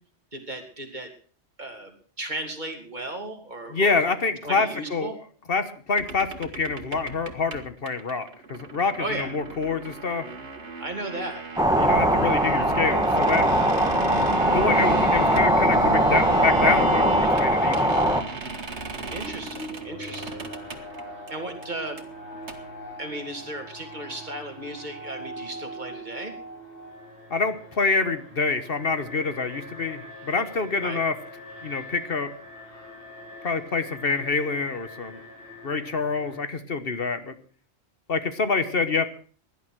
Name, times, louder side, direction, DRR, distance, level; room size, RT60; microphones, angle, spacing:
voice 1, 0.3-1.1 1.6-4.0 4.4-5.2 9.0-9.3 10.8-11.4 19.1-20.4 21.3-22.0 23.0-26.3 30.8-31.0, right 1 dB, 40° right, 4 dB, 2.9 m, -35 dB
voice 2, 3.7-5.1 5.5-10.2 11.8-13.5 14.5-18.0 27.3-31.1 31.6-32.3 33.4-35.2 35.6-37.3 38.1-39.1, left 4 dB, 55° left, 11 dB, 1.4 m, -26 dB
sound 1, 6.0-21.3 21.6-21.7 22.0-22.1 22.3-22.5, right 4 dB, 75° right, 2.0 m, -35 dB
sound 2, 11.6-18.2, right 1 dB, 5° right, 1.6 m, -21 dB
Alarm, 18.7-36.4, equal, 75° left, 5.1 m, -42 dB
17.0 x 11.0 x 6.1 m, 0.43 s
omnidirectional pair, 1.2 m